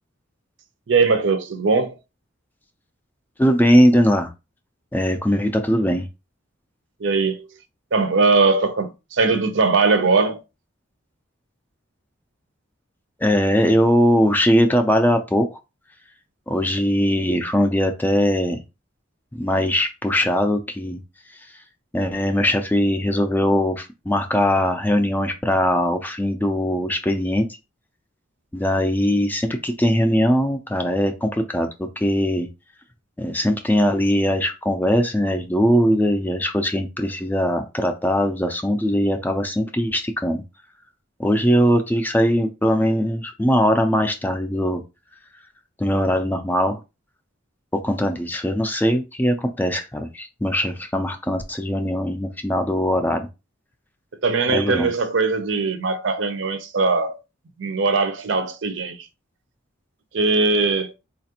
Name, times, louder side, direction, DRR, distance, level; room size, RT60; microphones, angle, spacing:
voice 1, 0.9-1.9 7.0-7.4 7.9-10.4 54.2-57.2 57.6-59.0 60.1-60.9, right 3 dB, 65° right, 0.6 m, -20 dB
voice 2, 3.4-4.3 4.9-6.1 13.2-15.5 16.5-18.6 19.3-21.0 21.9-27.5 28.5-32.5 33.2-40.4 41.2-44.8 45.8-46.8 47.8-53.3 54.5-54.9, equal, 10° left, 0.4 m, -20 dB
4.0 x 2.5 x 2.8 m
head